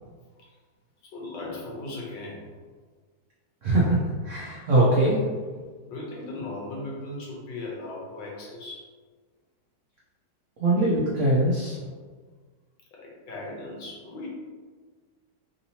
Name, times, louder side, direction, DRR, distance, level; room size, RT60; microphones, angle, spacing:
voice 1, 1.1-2.5 5.8-8.8 12.9-14.3, left 2 dB, 75° left, -4 dB, 1.6 m, -37 dB
voice 2, 3.6-5.2 10.6-11.8, right 1 dB, 75° right, -6 dB, 0.7 m, -22 dB
3.7 x 2.8 x 2.7 m, 1.5 s
omnidirectional pair, 2.1 m